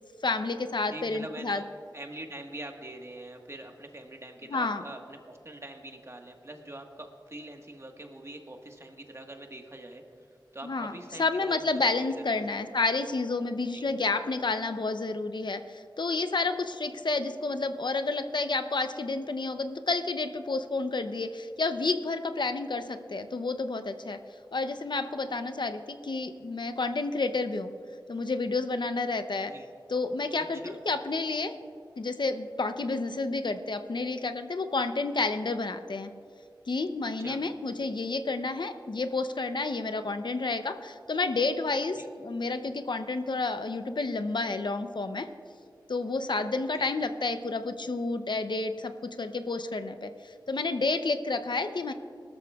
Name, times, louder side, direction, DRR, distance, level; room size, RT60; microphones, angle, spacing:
voice 1, 0.2-1.6 4.5-4.8 10.6-10.9 11.2-24.2 24.5-27.7 28.1-29.5 29.9-31.5 32.0-36.1 36.7-45.3 45.9-48.9 49.2-50.1 50.5-51.9, left 3 dB, 70° left, 9 dB, 0.7 m, -30 dB
voice 2, 0.9-1.7 1.9-10.0 10.5-11.7 12.0-12.4 13.7-13.8 29.5-29.7 30.4-30.8 37.2-37.4 42.0-42.1 46.7-46.9, right 1 dB, 35° right, 3 dB, 1.4 m, -44 dB
20.0 x 13.0 x 2.4 m, 2.4 s
wide cardioid pair, 55°, 8 cm